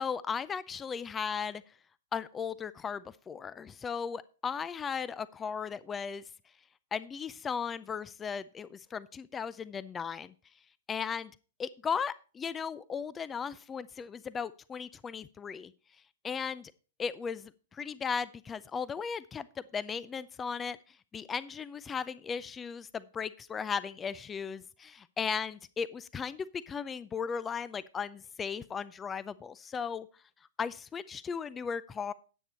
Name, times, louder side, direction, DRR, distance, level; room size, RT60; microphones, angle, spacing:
voice 1, 0.0-1.6 2.1-6.2 6.9-10.3 10.9-11.3 11.6-15.7 16.2-16.7 17.0-30.1 30.6-32.1, left 6 dB, 20° left, 18 dB, 0.4 m, -36 dB
10.0 x 8.2 x 4.3 m, 0.37 s
figure-of-eight pair, 110°, 0 cm